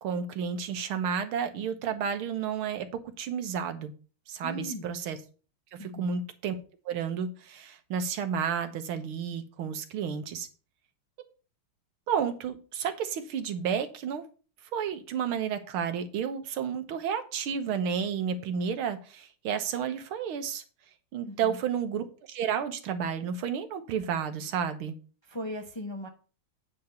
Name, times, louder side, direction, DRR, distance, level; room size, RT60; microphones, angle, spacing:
voice 1, 0.0-2.9 3.2-3.9 4.3-5.2 5.7-6.6 6.9-10.5 12.1-14.2 14.7-20.6 21.1-25.0, right 7 dB, 85° right, 9 dB, 1.9 m, -31 dB
voice 2, 4.4-4.9 5.8-6.1 21.3-21.6 25.3-26.1, left 1 dB, 25° left, 3 dB, 0.6 m, -38 dB
9.2 x 3.9 x 6.8 m, 0.37 s
omnidirectional pair, 2.2 m